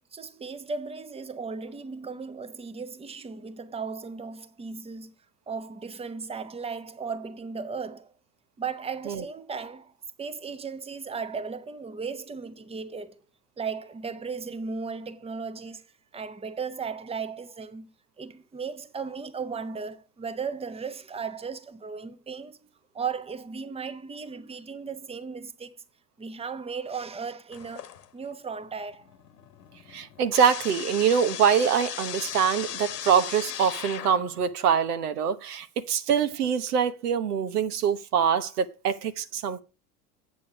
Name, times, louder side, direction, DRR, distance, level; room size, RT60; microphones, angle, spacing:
voice 1, 0.1-5.1 5.5-8.1 8.6-9.9 10.2-13.2 13.6-17.9 18.2-22.6 22.9-25.8 26.2-29.1, right 5 dB, 10° right, 1.1 m, -36 dB
sound 1, 27.5-28.3 28.7-34.5, left 10 dB, 80° left, 1.1 m, -37 dB
voice 2, 29.9-39.6, right 7 dB, 75° right, 1.1 m, -24 dB
8.5 x 8.5 x 4.7 m
hypercardioid pair, 85°, 47 cm